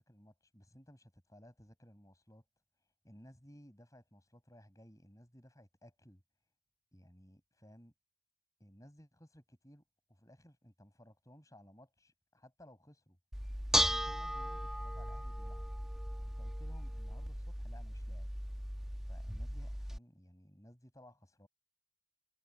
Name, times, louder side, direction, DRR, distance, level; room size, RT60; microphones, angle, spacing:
voice 1, 0.0-2.5 3.0-6.2 6.9-7.9 8.6-9.8 10.1-13.2 13.7-15.7 16.4-18.3 19.1-21.5, equal, 15° left, 6.5 m, -59 dB
Bell / Dishes pots and pans, 13.3-20.0, equal, ahead, 1.2 m, -37 dB
head